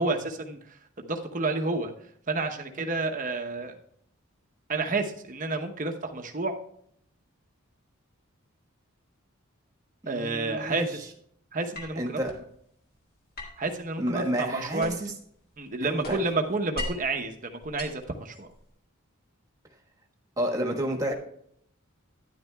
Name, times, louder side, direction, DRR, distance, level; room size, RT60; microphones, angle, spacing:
voice 1, 0.0-1.9 2.3-3.8 4.7-6.5 10.1-11.1 11.5-12.2 13.6-15.0 15.6-18.5, right 3 dB, 35° right, 4 dB, 0.9 m, -30 dB
voice 2, 10.0-11.0 11.9-12.3 14.0-15.1 15.8-16.2 20.4-21.1, right 1 dB, 15° right, 1 dB, 1.3 m, -30 dB
sound 1, 11.7-12.5 13.4-15.2 15.5-17.2 17.6-18.7, left 1 dB, 45° left, 1.8 m, -40 dB
12.0 x 10.0 x 2.3 m, 0.68 s
head